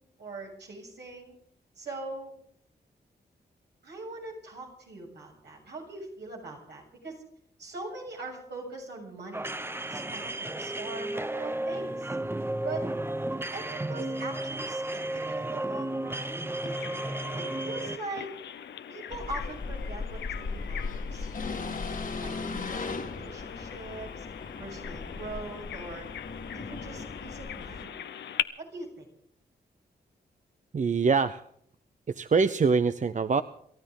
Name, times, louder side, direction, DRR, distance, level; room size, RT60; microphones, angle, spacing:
voice 1, 0.0-1.4 1.8-2.3 3.8-7.2 7.6-9.6 9.9-12.2 12.6-12.8 13.3-16.7 17.4-18.3 18.9-21.8 22.2-24.3 24.6-26.1 26.5-28.0 28.6-29.1, right 2 dB, 75° right, -1 dB, 7.1 m, -42 dB
sound 1, 9.3-18.0, right 1 dB, 15° right, 0.8 m, -33 dB
Bird vocalization bird call bird song, 16.7-28.4, left 9 dB, 90° left, 0.7 m, -41 dB
sound 2, 19.1-27.8, left 4 dB, 50° left, 1.7 m, -37 dB
voice 2, 30.7-31.5 32.1-33.4, right 5 dB, 45° right, 12 dB, 0.7 m, -24 dB
28.0 x 13.0 x 3.8 m, 0.67 s
cardioid pair, 60°, 18 cm